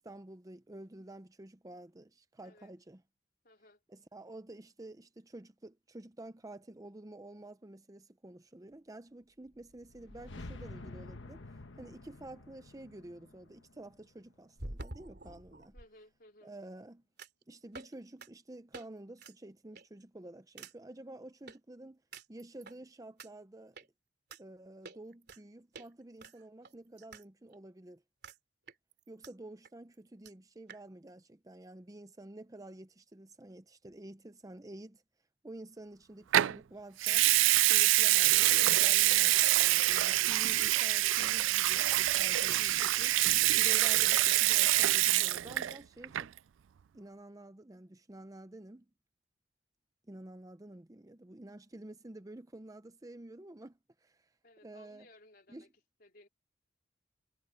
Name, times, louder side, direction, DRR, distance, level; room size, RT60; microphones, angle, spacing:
voice 1, 0.0-3.0 3.9-15.7 16.4-17.0 17.5-22.0 22.3-23.8 24.4-28.0 29.1-35.0 35.4-37.3 37.6-46.4 46.9-48.9 50.0-54.3 54.6-55.1 55.5-55.7, right 1 dB, 20° right, 0.6 m, -50 dB
voice 2, 3.4-3.8 15.7-16.5 54.4-55.7 56.0-56.3, left 1 dB, 50° left, 4.0 m, -60 dB
sound 1, 9.5-14.7, left 2 dB, 75° left, 1.3 m, -49 dB
sound 2, 14.6-15.9 17.2-17.4 17.7-17.9 18.2-18.3 18.7-18.9 19.2-19.4 19.8-20.0 20.6-20.7 21.5-21.6 22.1-22.8 23.2-23.3 23.8-23.9 24.3-24.4 24.9-25.4 25.7-25.9 26.2-27.3 27.5-27.6 28.2-28.4 28.7-29.3 29.7-29.8 29.9-30.0 30.3-30.4 30.7-30.8, right 2 dB, 60° right, 3.3 m, -47 dB
Water tap faucet / Sink (filling or washing) / Liquid, 36.3-36.6 37.0-45.8 46.0-46.4, right 16 dB, 85° right, 0.4 m, -26 dB
head